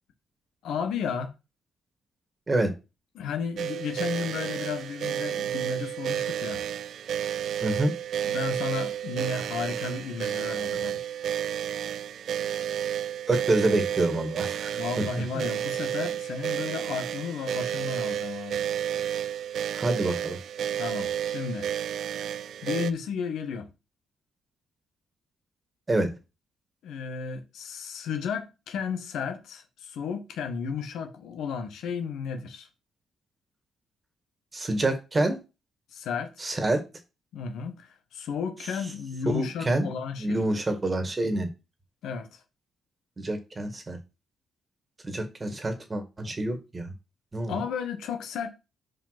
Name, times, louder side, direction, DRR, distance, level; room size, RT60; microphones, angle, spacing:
voice 1, 0.6-1.3 3.1-6.6 8.2-11.0 14.7-18.6 20.6-21.7 22.6-23.7 26.8-32.7 35.9-36.5 37.3-40.4 42.0-42.4 47.5-48.5, left 6 dB, 85° left, 1.3 m, -33 dB
sound 1, 3.6-22.9, right 10 dB, 70° right, 0.4 m, -31 dB
voice 2, 7.6-7.9 13.3-14.7 19.7-20.4 25.9-26.1 34.5-35.4 36.4-36.8 39.3-39.9 40.2-41.5 43.2-44.0 45.0-46.9 47.3-47.6, right 2 dB, 25° right, 1.9 m, -27 dB
5.2 x 4.9 x 5.9 m
cardioid pair, 105°, 0 cm